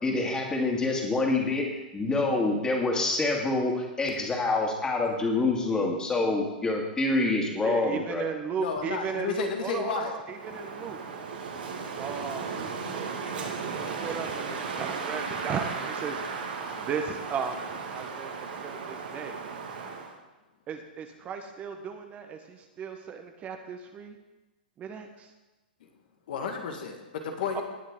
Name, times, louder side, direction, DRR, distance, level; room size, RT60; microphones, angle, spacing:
voice 1, 0.0-8.3, left 2 dB, 15° left, 0 dB, 2.3 m, -26 dB
voice 2, 7.6-10.1 10.4-11.0 12.0-16.2 16.8-17.6 17.9-18.3 18.6-19.4 20.7-24.1 24.8-25.1 27.5-27.6, right 6 dB, 25° right, 5 dB, 1.1 m, -36 dB
voice 3, 8.6-10.2 10.4-10.6 10.8-10.9 26.3-27.6, left 6 dB, 65° left, 4 dB, 1.7 m, -32 dB
Wind, 10.3-20.2, right 5 dB, 70° right, 2.1 m, -35 dB
18.5 x 6.4 x 3.8 m, 1.1 s
hypercardioid pair, 115°, 5 cm